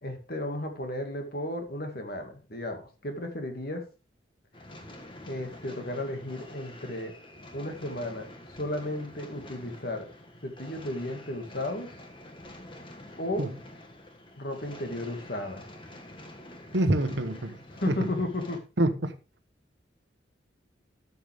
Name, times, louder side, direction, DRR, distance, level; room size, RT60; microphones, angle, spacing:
voice 1, 0.0-3.8 5.3-7.1 7.5-8.3 8.6-10.1 10.4-11.9 13.2-13.5 14.4-15.6 17.8-18.6, left 1 dB, 50° left, 2.1 m, -34 dB
sound 1, 4.5-18.6, left 1 dB, 25° left, 1.5 m, -47 dB
voice 2, 16.7-18.1 18.8-19.1, right 1 dB, 65° right, 1.1 m, -27 dB
12.5 x 7.0 x 3.5 m
head